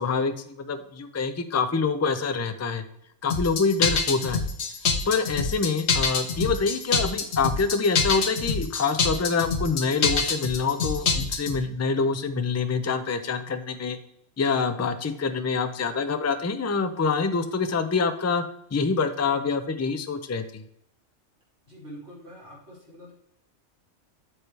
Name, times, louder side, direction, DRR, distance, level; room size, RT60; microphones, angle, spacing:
voice 1, 0.0-2.8 3.2-4.4 5.1-14.0 14.4-18.4 18.7-20.6, left 4 dB, 25° left, 9 dB, 0.3 m, -26 dB
sound 1, 3.3-11.6, left 5 dB, 65° left, 1.2 m, -25 dB
voice 2, 21.7-23.1, equal, 65° right, -6 dB, 4.4 m, -45 dB
9.0 x 7.2 x 3.3 m, 0.73 s
omnidirectional pair, 1.2 m